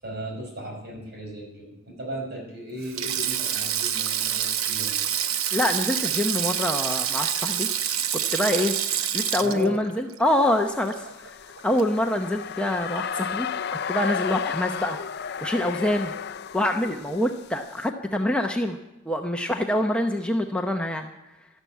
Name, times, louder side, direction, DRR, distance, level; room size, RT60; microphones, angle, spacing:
voice 1, 0.0-5.1 9.4-9.8, right 1 dB, 50° right, 1 dB, 5.3 m, -36 dB
Sink (filling or washing), 2.8-11.3 11.6-11.8 13.0-13.2, right 9 dB, 80° right, 0.9 m, -27 dB
voice 2, 5.5-7.7 8.1-8.7 9.1-11.3 11.6-13.5 13.9-15.0 15.4-16.1 16.5-18.8 19.1-21.1, left 1 dB, 5° left, 3 dB, 0.8 m, -25 dB
sound 1, 10.3-17.9, left 7 dB, 50° left, 0.4 m, -33 dB
13.0 x 13.0 x 8.5 m, 0.95 s
head